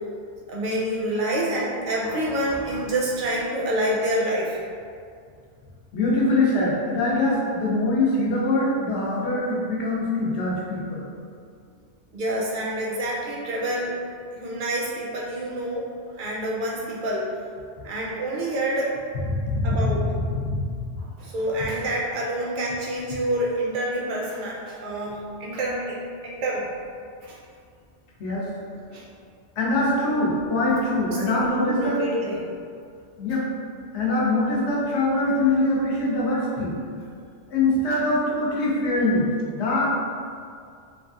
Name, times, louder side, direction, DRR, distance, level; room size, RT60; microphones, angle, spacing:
voice 1, 0.5-4.6 12.1-14.0 14.3-15.9 16.2-17.3 17.8-18.9 19.6-20.0 21.0-26.0 26.2-26.7 27.2-27.4 28.9-29.0 31.1-32.4 35.1-35.2, right 1 dB, 55° right, -4 dB, 0.6 m, -27 dB
voice 2, 5.9-11.0 19.3-19.6 20.1-20.6 28.2-28.5 29.6-32.0 33.2-33.4 33.9-36.7 37.5-39.3 39.5-39.9, left 2 dB, 70° left, -5 dB, 0.8 m, -23 dB
3.0 x 2.4 x 2.4 m, 2.2 s
omnidirectional pair, 1.2 m